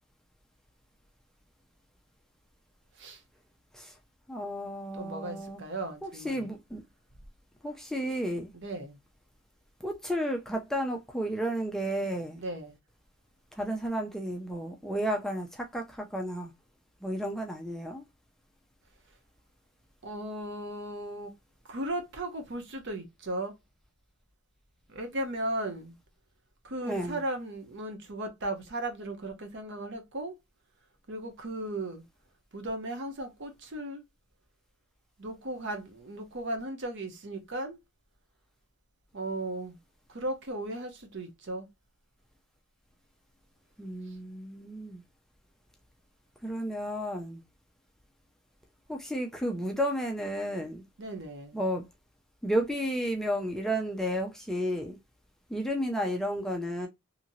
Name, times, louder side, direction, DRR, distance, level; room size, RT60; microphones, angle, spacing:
voice 1, 4.3-5.6 6.0-6.8 7.6-8.5 9.8-12.4 13.5-16.5 17.0-18.0 26.9-27.2 43.8-45.0 46.4-47.4 48.9-50.8 51.5-51.9 52.4-55.0 55.5-56.9, equal, ahead, 0.4 m, -32 dB
voice 2, 4.9-6.5 8.6-9.0 12.4-12.8 20.0-21.3 21.6-23.5 24.9-25.9 26.6-30.3 31.1-32.0 32.5-34.0 35.2-37.8 39.1-39.8 40.1-41.7 51.0-51.6, right 1 dB, 55° right, 0.8 m, -36 dB
2.8 x 2.6 x 2.7 m
head